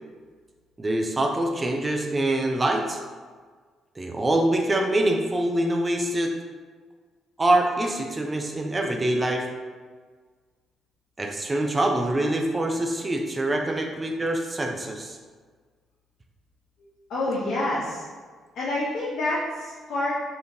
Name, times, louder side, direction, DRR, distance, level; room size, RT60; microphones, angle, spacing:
voice 1, 0.8-3.0 4.0-6.3 7.4-9.5 11.2-15.2, right 1 dB, 20° right, 2 dB, 0.4 m, -25 dB
voice 2, 17.1-18.0 18.6-20.2, left 1 dB, 65° left, -7 dB, 0.8 m, -27 dB
4.9 x 2.8 x 2.7 m, 1.5 s
cardioid pair, 110°, 0 cm